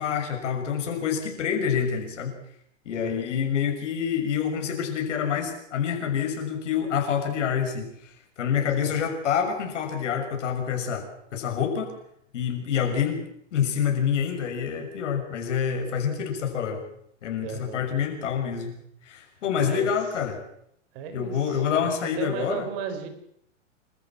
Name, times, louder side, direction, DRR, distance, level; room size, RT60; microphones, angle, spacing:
voice 1, 0.0-2.3 2.8-11.9 12.3-13.2 13.5-16.8 17.2-18.7 19.0-20.4 21.1-22.7, left 7 dB, 70° left, 4 dB, 6.5 m, -27 dB
voice 2, 3.0-3.3 8.8-9.0 15.9-16.0 17.4-17.8 19.6-19.9 20.9-23.1, right 7 dB, 50° right, 9 dB, 4.3 m, -35 dB
27.0 x 14.0 x 7.4 m, 0.72 s
hypercardioid pair, 130°, 37 cm